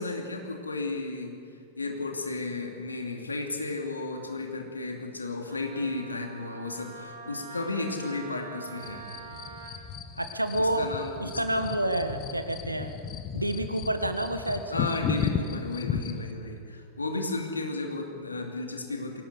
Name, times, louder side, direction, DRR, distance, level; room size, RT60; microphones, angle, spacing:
voice 1, 0.0-1.3 1.8-9.0 10.6-11.1 11.5-11.7 14.7-19.2, left 3 dB, 80° left, 3 dB, 2.7 m, -33 dB
Wind instrument woodwind instrument, 5.4-9.8, right 6 dB, 60° right, 2.9 m, -44 dB
sound 1, 8.8-16.3, left 7 dB, 35° left, 1.3 m, -35 dB
voice 2, 10.2-10.9 11.2-12.9 13.3-14.9, right 1 dB, 85° right, 8 dB, 1.5 m, -29 dB
22.0 x 18.0 x 8.4 m, 2.4 s
figure-of-eight pair, 90°, 0 cm